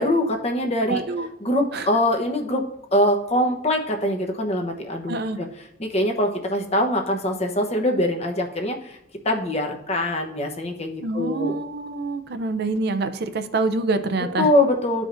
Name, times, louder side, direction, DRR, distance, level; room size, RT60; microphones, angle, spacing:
voice 1, 0.0-1.0 1.4-5.5 5.8-9.0 9.2-11.5 14.4-15.1, left 1 dB, 35° left, 3 dB, 0.9 m, -23 dB
voice 2, 0.9-1.3 1.7-1.9 5.1-5.4 11.0-14.5, right 3 dB, 55° right, 9 dB, 0.5 m, -26 dB
13.0 x 4.9 x 2.5 m, 0.85 s
head